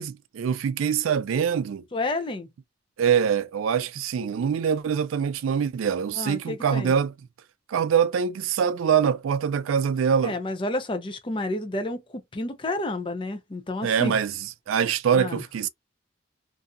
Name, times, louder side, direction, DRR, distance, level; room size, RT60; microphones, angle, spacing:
voice 1, 0.0-1.8 3.0-7.1 7.7-10.3 13.8-14.4 14.7-15.7, right 7 dB, 80° right, 0.3 m, -24 dB
voice 2, 1.9-2.5 6.2-6.9 10.2-14.2 15.1-15.4, left 2 dB, 25° left, 0.5 m, -30 dB
2.6 x 2.4 x 2.3 m
head